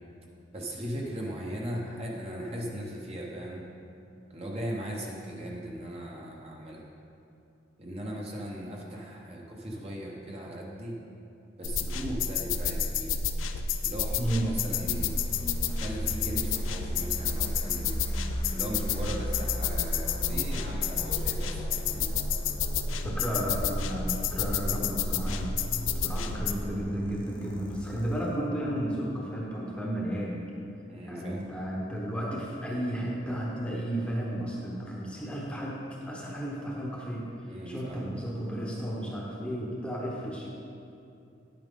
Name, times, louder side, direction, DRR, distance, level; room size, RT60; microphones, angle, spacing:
voice 1, 0.5-3.6 4.3-6.8 7.8-11.0 11.6-13.2 13.8-15.2 15.7-18.0 18.5-22.1 26.0-26.3 30.9-31.4 37.4-38.0, right 1 dB, 30° right, -2 dB, 1.0 m, -38 dB
sound 1, 11.6-26.5, left 5 dB, 85° left, 0.5 m, -30 dB
sound 2, 14.8-28.4, equal, 25° left, 1.1 m, -39 dB
voice 2, 23.0-25.5 25.9-30.4 31.0-35.8 36.1-37.3 37.7-40.5, equal, 5° left, -4 dB, 1.0 m, -33 dB
10.0 x 8.7 x 3.7 m, 2.6 s
head